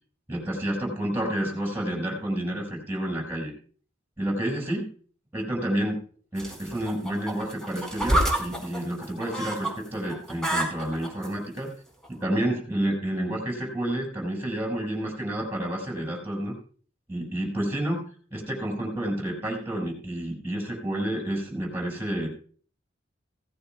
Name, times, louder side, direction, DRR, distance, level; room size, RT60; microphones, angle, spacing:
voice 1, 0.3-3.5 4.2-4.9 5.3-6.0 6.3-11.7 12.1-16.5 17.1-18.0 18.3-22.3, right 1 dB, 10° right, -1 dB, 6.1 m, -29 dB
sound 1, 6.4-9.7 10.0-11.3 12.0-12.1, right 1 dB, 5° left, 4.6 m, -28 dB
17.0 x 15.5 x 2.4 m, 0.43 s
head